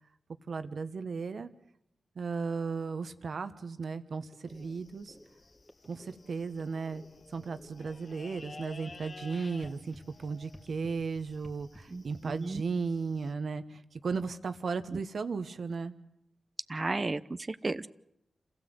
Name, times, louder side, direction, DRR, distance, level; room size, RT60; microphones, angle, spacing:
voice 1, 0.5-1.5 2.1-5.2 5.9-7.0 7.3-9.9 10.2-15.9, right 4 dB, 70° right, 10 dB, 1.3 m, -35 dB
sound 1, 4.3-11.8, left 1 dB, 15° left, 2.9 m, -56 dB
sound 2, 4.5-13.3, left 3 dB, 55° left, 1.3 m, -53 dB
voice 2, 11.9-12.6 14.9-15.0 16.7-17.9, right 3 dB, 40° right, 13 dB, 0.8 m, -34 dB
27.5 x 16.0 x 8.0 m, 0.81 s
cardioid pair, 40°, 0 cm